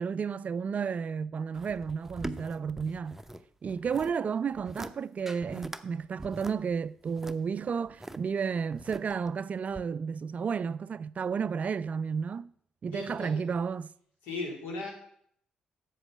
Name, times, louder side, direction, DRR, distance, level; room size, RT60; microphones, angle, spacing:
voice 1, 0.0-3.2 3.6-12.5 12.8-13.9, right 6 dB, 45° right, 0.3 m, -32 dB
sound 1, 1.5-3.4 3.7-4.2 4.5-4.9 5.3-5.8 6.2-8.2 8.7-9.3 9.7-9.8, right 1 dB, 10° right, 0.7 m, -42 dB
voice 2, 12.9-13.3 14.2-14.9, left 3 dB, 75° left, 2.6 m, -36 dB
7.9 x 6.2 x 7.3 m
hypercardioid pair, 45°, 3 cm